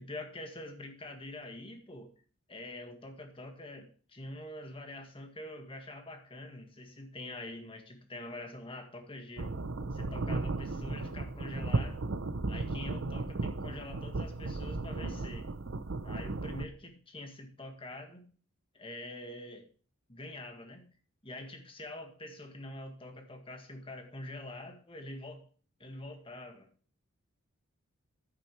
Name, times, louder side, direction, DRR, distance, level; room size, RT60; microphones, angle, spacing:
voice 1, 0.0-2.1 2.5-9.6 9.9-12.0 12.5-15.5 16.0-18.3 18.7-19.7 20.1-20.9 21.2-25.5 25.8-26.7, left 1 dB, 25° left, 5 dB, 1.8 m, -45 dB
sound 1, 9.4-16.7, right 2 dB, 65° right, 0.7 m, -35 dB
10.0 x 8.7 x 3.2 m, 0.41 s
head